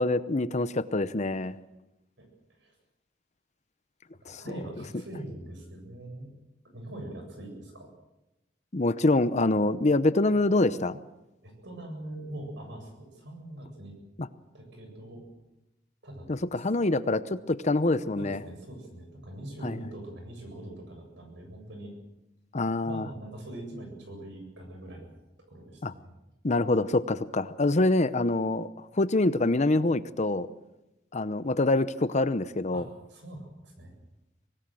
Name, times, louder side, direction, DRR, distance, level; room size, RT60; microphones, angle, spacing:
voice 1, 0.0-1.6 4.3-4.5 8.7-11.0 14.2-14.3 16.3-18.4 19.6-19.8 22.5-23.1 25.8-25.9 26.4-30.5 31.1-32.8, left 2 dB, 40° left, 14 dB, 0.8 m, -25 dB
voice 2, 4.2-6.3 6.6-7.9 11.4-14.0 14.5-15.2 16.0-16.6 18.2-21.9 22.8-25.1 25.5-26.0 32.7-33.9, right 1 dB, 65° right, 4 dB, 7.5 m, -42 dB
24.5 x 18.0 x 7.7 m, 0.96 s
head